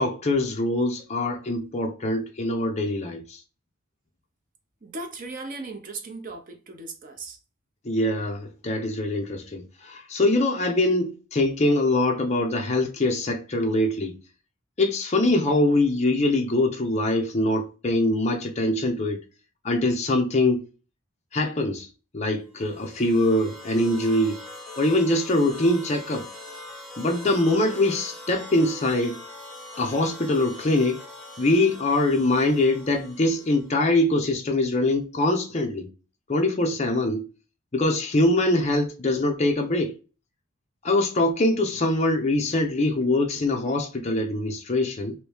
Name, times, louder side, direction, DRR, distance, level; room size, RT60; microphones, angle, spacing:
voice 1, 0.0-3.4 7.8-14.2 14.8-19.2 19.6-20.6 21.3-21.9 22.1-24.4 24.8-26.3 27.0-29.2 29.8-31.0 31.4-35.9 36.3-37.2 37.7-39.9 40.8-45.1, left 1 dB, 30° left, 0.6 m, -23 dB
voice 2, 4.8-7.4, right 3 dB, 40° right, 0.6 m, -37 dB
sound 1, 22.5-33.8, left 2 dB, ahead, 1.1 m, -42 dB
3.0 x 2.6 x 3.4 m
head